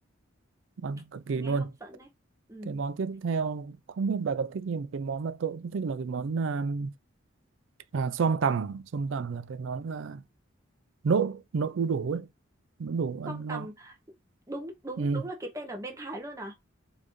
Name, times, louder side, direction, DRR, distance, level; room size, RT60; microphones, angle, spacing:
voice 1, 0.8-1.7 2.7-6.9 7.9-10.2 11.0-12.3 12.8-13.7 15.0-15.2, right 5 dB, 70° right, 0.4 m, -30 dB
voice 2, 1.4-2.1 2.5-2.8 13.3-14.0 14.5-16.5, right 1 dB, 15° right, 0.7 m, -39 dB
4.1 x 2.6 x 3.0 m
head